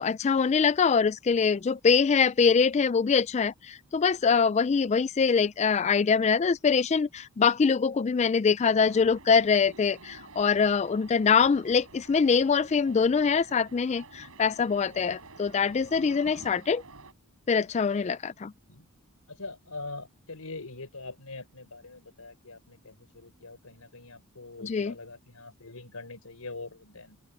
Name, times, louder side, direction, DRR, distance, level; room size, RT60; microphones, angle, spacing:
voice 1, 0.0-16.8 17.5-18.5 24.6-24.9, left 5 dB, 30° left, 0.3 m, -24 dB
sound 1, 8.7-17.1, right 3 dB, 70° right, 5.3 m, -50 dB
voice 2, 19.3-27.2, left 3 dB, 85° left, 4.1 m, -43 dB
open air
head